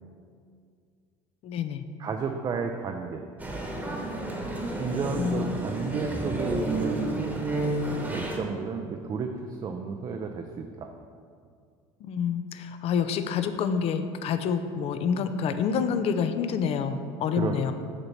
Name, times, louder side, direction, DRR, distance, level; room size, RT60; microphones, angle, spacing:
voice 1, 1.4-1.8 5.2-5.4 12.0-17.7, left 7 dB, 50° left, 10 dB, 0.5 m, -28 dB
voice 2, 2.0-3.3 4.8-7.2 8.1-11.0 17.3-17.7, right 5 dB, 30° right, 4 dB, 0.4 m, -32 dB
Male speech man speaking, 3.4-8.4, right 1 dB, 10° right, 1.1 m, -31 dB
6.6 x 3.0 x 5.7 m, 2.2 s
supercardioid pair, 90°, 13 cm